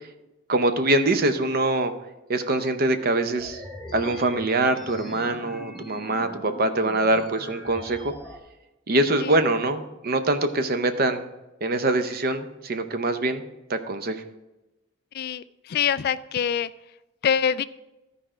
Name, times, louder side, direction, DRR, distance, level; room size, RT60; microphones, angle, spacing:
voice 1, 0.5-1.9 2.3-3.6 3.9-8.1 8.9-11.2 11.6-13.4 13.7-14.2, right 2 dB, 50° right, 9 dB, 0.7 m, -24 dB
sound 1, 3.4-8.4, equal, ahead, 1.0 m, -41 dB
voice 2, 15.1-16.7 17.2-17.6, left 8 dB, 50° left, 15 dB, 0.3 m, -25 dB
12.5 x 4.9 x 4.4 m, 1.0 s
head